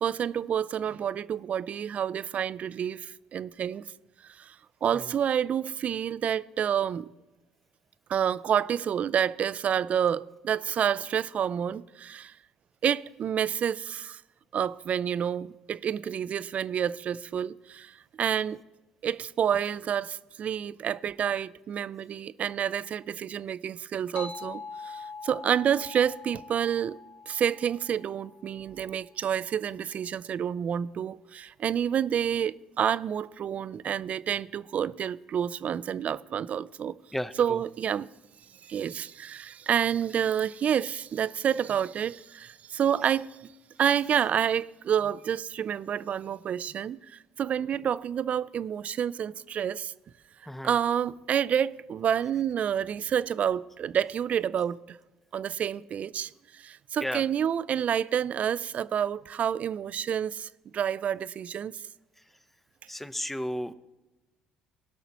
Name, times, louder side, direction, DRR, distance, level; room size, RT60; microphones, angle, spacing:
voice 1, 0.0-3.8 4.4-4.6 4.8-7.1 8.1-12.3 12.8-14.2 14.5-18.6 19.0-27.0 27.3-37.0 37.4-38.1 38.6-43.4 43.8-49.9 50.6-55.0 55.3-61.7, right 8 dB, 50° right, 0.3 m, -29 dB
sound 1, 24.2-29.1, left 4 dB, 45° left, 1.0 m, -44 dB
voice 2, 37.1-37.6 50.4-50.8 57.0-57.3 62.2-62.3 62.9-63.7, equal, 5° left, 0.6 m, -34 dB
17.5 x 5.9 x 4.2 m
hypercardioid pair, 60°, 3 cm